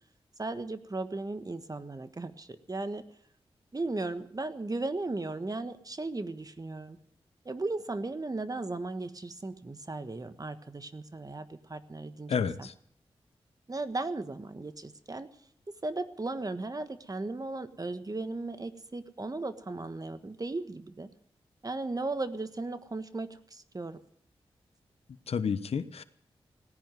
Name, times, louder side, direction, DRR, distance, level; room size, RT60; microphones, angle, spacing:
voice 1, 0.4-3.0 3.7-7.0 7.4-12.7 13.7-15.3 15.7-21.1 21.6-24.0, right 2 dB, 35° right, 11 dB, 1.4 m, -36 dB
voice 2, 12.3-12.7 25.3-26.0, left 6 dB, 75° left, 13 dB, 1.0 m, -30 dB
17.5 x 10.5 x 7.7 m, 0.64 s
cardioid pair, 40°, 10 cm